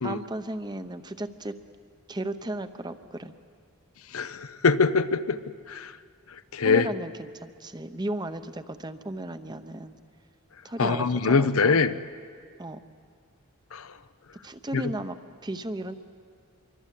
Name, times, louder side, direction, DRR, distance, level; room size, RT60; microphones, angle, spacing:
voice 1, 0.0-1.5 2.1-3.3 6.6-9.9 10.6-11.8 12.6-12.8 14.4-15.9, right 1 dB, 20° right, 10 dB, 0.8 m, -35 dB
voice 2, 4.1-5.4 5.7-5.9 6.5-6.9 10.8-11.9 13.7-13.9 14.7-14.8, left 4 dB, 75° left, 12 dB, 0.8 m, -23 dB
25.5 x 24.0 x 8.4 m, 2.1 s
head